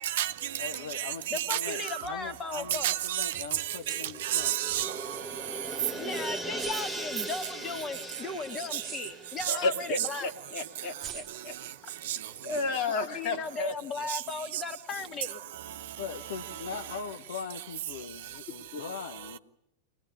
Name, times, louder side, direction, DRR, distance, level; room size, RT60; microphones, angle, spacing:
voice 1, 0.0-2.0 2.7-5.2 8.7-8.8 9.4-9.5 10.0-10.1 12.1-12.2 14.1-14.2 14.5-14.6, right 12 dB, 55° right, 0.9 m, -31 dB
voice 2, 0.6-4.5 16.0-19.4, left 6 dB, 60° left, 1.1 m, -41 dB
voice 3, 1.3-2.9 5.9-10.3 13.0-15.5, left 4 dB, 25° left, 2.1 m, -37 dB
sound 1, 3.7-10.7 11.0-11.1, right 1 dB, 5° left, 1.3 m, -40 dB
sound 2, 3.7-5.0 5.4-5.6 6.5-7.1 8.7-9.7 10.0-10.1 10.9-11.6, right 9 dB, 25° right, 1.3 m, -45 dB
voice 4, 9.5-11.6 12.4-13.7 18.7-18.8, left 3 dB, 45° left, 2.5 m, -32 dB
24.0 x 20.0 x 9.8 m
figure-of-eight pair, 90°, 0 cm